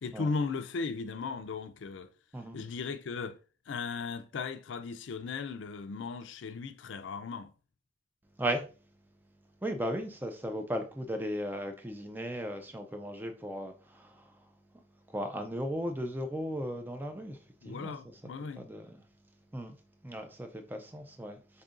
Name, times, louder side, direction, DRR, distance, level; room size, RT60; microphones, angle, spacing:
voice 1, 0.0-2.1 2.5-3.4 3.7-7.5 17.6-18.7, left 4 dB, 75° left, 0.4 m, -37 dB
voice 2, 9.6-14.4 15.1-17.4 17.6-17.9 18.6-19.0 19.5-19.8 20.0-21.6, equal, 10° right, 0.4 m, -36 dB
4.9 x 2.7 x 2.5 m
head